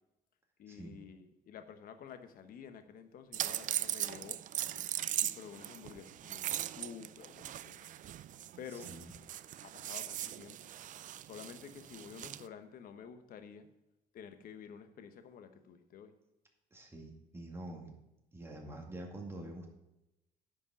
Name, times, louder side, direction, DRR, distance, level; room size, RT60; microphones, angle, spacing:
voice 1, 0.6-4.4 5.2-7.8 8.6-8.9 9.6-10.6 11.2-13.7 14.1-16.2, left 7 dB, 60° left, 8 dB, 1.1 m, -50 dB
sound 1, 3.3-12.5, right 12 dB, 50° right, 0.4 m, -39 dB
voice 2, 8.7-9.1 16.7-18.0 18.3-19.7, right 1 dB, 15° right, 0 dB, 2.3 m, -46 dB
10.0 x 5.3 x 7.0 m, 0.92 s
cardioid pair, 110°, 17 cm